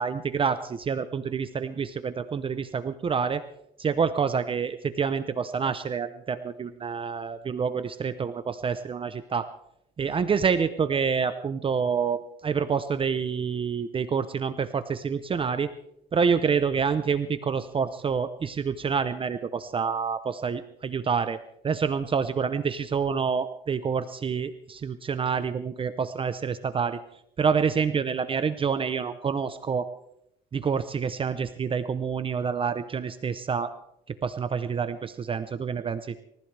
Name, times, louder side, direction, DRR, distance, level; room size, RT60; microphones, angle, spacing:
voice 1, 0.0-3.4 3.8-9.5 10.0-15.7 16.1-21.4 21.6-27.0 27.4-29.9 30.5-33.7 34.2-36.2, right 6 dB, 30° right, 11 dB, 0.8 m, -27 dB
27.5 x 15.0 x 3.4 m, 0.78 s
cardioid pair, 110°, 17 cm